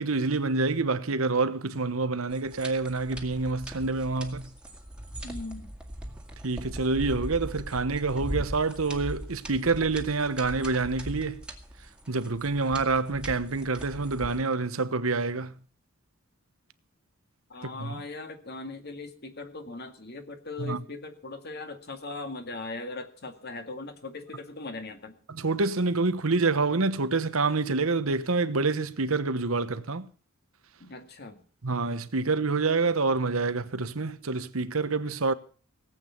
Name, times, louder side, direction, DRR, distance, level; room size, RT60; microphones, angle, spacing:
voice 1, 0.0-4.5 6.4-11.4 12.1-15.6 17.8-18.0 20.6-20.8 25.3-30.1 31.6-35.3, right 3 dB, 80° right, 1.1 m, -27 dB
sound 1, 2.3-14.4, equal, 5° right, 2.1 m, -40 dB
voice 2, 5.2-5.7 17.5-25.2 30.8-31.4, left 3 dB, 50° left, 2.2 m, -39 dB
18.5 x 8.5 x 7.2 m
head